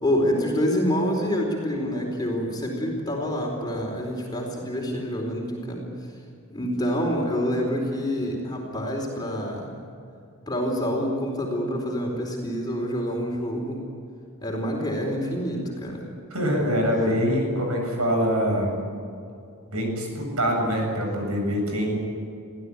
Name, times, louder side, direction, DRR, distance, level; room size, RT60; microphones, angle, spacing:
voice 1, 0.0-5.8 6.5-9.8 10.5-13.8 14.4-16.1 16.9-17.2, equal, 20° left, -1 dB, 4.3 m, -27 dB
voice 2, 16.3-18.7 19.7-21.9, equal, 80° right, 2 dB, 7.8 m, -24 dB
25.5 x 16.0 x 9.9 m, 2.5 s
head